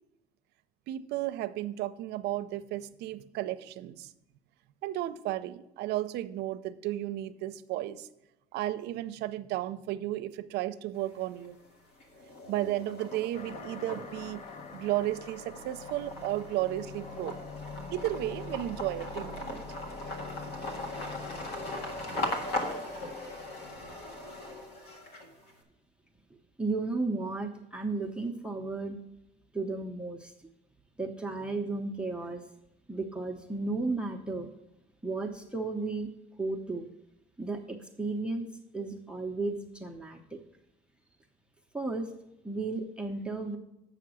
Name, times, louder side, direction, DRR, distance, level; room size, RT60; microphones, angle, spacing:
voice 1, 0.9-4.1 4.8-8.1 8.5-11.6 12.5-14.4 14.7-17.4 17.9-19.6, right 14 dB, 85° right, 13 dB, 0.5 m, -33 dB
sound 1, 11.0-11.6 12.0-25.5, left 1 dB, 75° left, 1.6 m, -39 dB
sound 2, 13.3-24.3, left 5 dB, 45° left, 0.7 m, -47 dB
voice 2, 26.6-29.0 29.5-30.3 31.0-32.4 32.9-34.5 35.0-36.1 36.4-36.9 37.4-38.5 38.7-40.4 41.7-42.1 42.4-43.6, right 3 dB, 5° right, 0 dB, 0.7 m, -34 dB
7.9 x 5.8 x 6.2 m, 0.87 s
cardioid pair, 110°, 17 cm